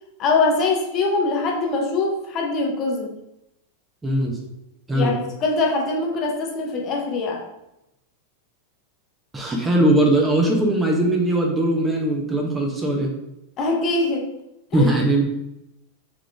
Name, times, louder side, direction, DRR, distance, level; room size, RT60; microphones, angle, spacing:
voice 1, 0.2-3.1 4.9-7.4 13.6-14.3 14.7-14.9, left 3 dB, 35° left, 0 dB, 0.8 m, -23 dB
voice 2, 4.0-4.4 4.9-5.1 9.3-13.1 14.7-15.4, right 1 dB, 10° right, 0 dB, 0.9 m, -20 dB
3.7 x 3.6 x 3.4 m, 0.87 s
figure-of-eight pair, 90°, 0 cm